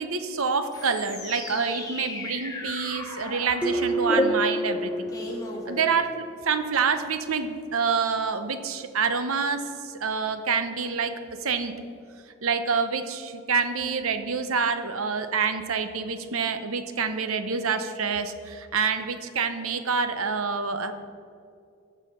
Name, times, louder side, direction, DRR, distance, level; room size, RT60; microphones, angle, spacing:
voice 1, 0.0-5.1 5.7-11.1 11.4-11.7 12.4-20.9, right 5 dB, 80° right, 9 dB, 0.8 m, -27 dB
sound 1, 0.7-6.4, left 1 dB, 15° left, 1.2 m, -33 dB
sound 2, 3.6-6.2, right 1 dB, 5° right, 1.1 m, -29 dB
15.0 x 5.6 x 5.6 m, 2.4 s
head